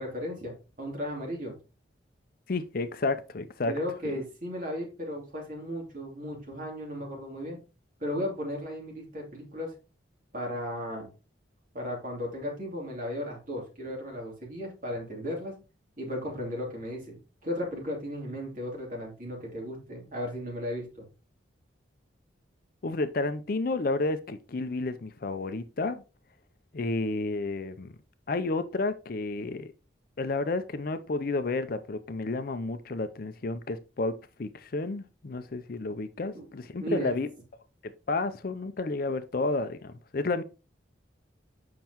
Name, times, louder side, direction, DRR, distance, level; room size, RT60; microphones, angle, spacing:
voice 1, 0.0-1.6 3.7-7.6 8.0-9.7 10.3-11.1 11.7-15.5 16.0-21.1 36.3-36.4 36.8-37.1, equal, 45° right, 2.9 m, -35 dB
voice 2, 2.5-3.7 4.0-4.1 22.8-26.0 26.7-27.9 28.3-29.7 30.2-34.1 34.4-37.3 38.1-40.4, left 3 dB, 50° left, 0.5 m, -31 dB
7.4 x 5.6 x 2.9 m
head